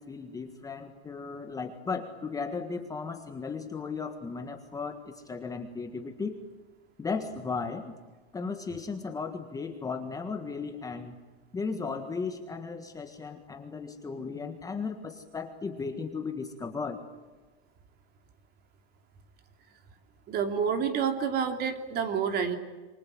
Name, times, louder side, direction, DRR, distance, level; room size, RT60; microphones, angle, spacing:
voice 1, 0.0-6.4 7.0-7.9 8.3-11.1 11.5-17.0, left 4 dB, 10° left, 5 dB, 1.6 m, -36 dB
voice 2, 20.3-22.6, right 7 dB, 30° right, 7 dB, 2.9 m, -28 dB
27.5 x 24.5 x 7.6 m, 1.3 s
supercardioid pair, 150°, 33 cm